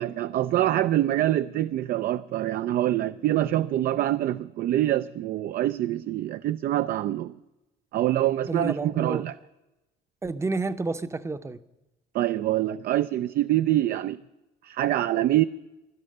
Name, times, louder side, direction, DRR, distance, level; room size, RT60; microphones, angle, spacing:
voice 1, 0.0-7.4 7.9-9.3 12.1-14.2 14.6-15.4, right 13 dB, 60° right, 0.4 m, -25 dB
voice 2, 8.5-9.2 10.2-11.6, right 3 dB, 15° right, 0.7 m, -30 dB
17.0 x 11.5 x 6.4 m
cardioid pair, 110°, 17 cm